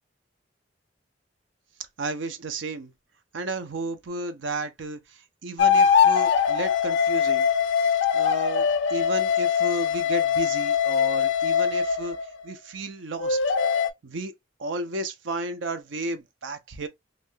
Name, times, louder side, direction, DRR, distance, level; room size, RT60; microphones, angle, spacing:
voice 1, 2.0-2.9 3.3-7.5 7.8-12.2 12.4-13.4 14.0-14.3 14.6-16.9, right 2 dB, 90° right, 0.7 m, -33 dB
sound 1, 5.6-12.3 13.2-13.9, left 7 dB, 75° left, 0.5 m, -22 dB
2.7 x 2.5 x 3.4 m
head